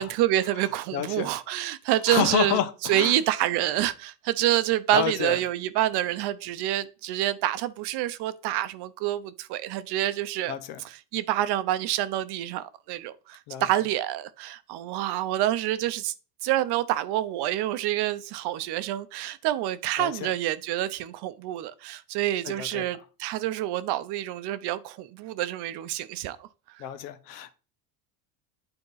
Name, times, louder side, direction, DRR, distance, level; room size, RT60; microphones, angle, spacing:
voice 1, 0.0-16.1 16.4-26.5 26.7-26.8, right 14 dB, 55° right, 0.7 m, -27 dB
voice 2, 0.9-1.3 2.1-3.2 4.9-5.4 10.5-10.8 13.5-13.6 20.0-20.3 22.4-22.8 26.8-27.5, left 10 dB, 90° left, 0.9 m, -29 dB
8.8 x 3.7 x 3.9 m
supercardioid pair, 110°, 47 cm